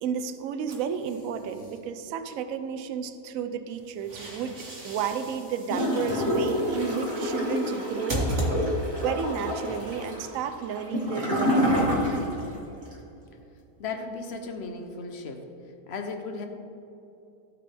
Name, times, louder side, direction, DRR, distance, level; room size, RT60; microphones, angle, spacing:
voice 1, 0.0-4.6 4.8-8.3 9.0-12.2, right 7 dB, 70° right, 9 dB, 1.0 m, -32 dB
sound 1, 0.7-1.8 3.7-9.1, right 1 dB, 50° right, 1.8 m, -35 dB
Gurgling / Toilet flush, 5.7-12.5 12.8-12.9, left 1 dB, 30° right, 2.0 m, -27 dB
voice 2, 13.8-15.5 15.9-16.5, left 4 dB, 50° left, 5 dB, 0.9 m, -35 dB
15.5 x 5.2 x 3.4 m, 2.9 s
omnidirectional pair, 1.6 m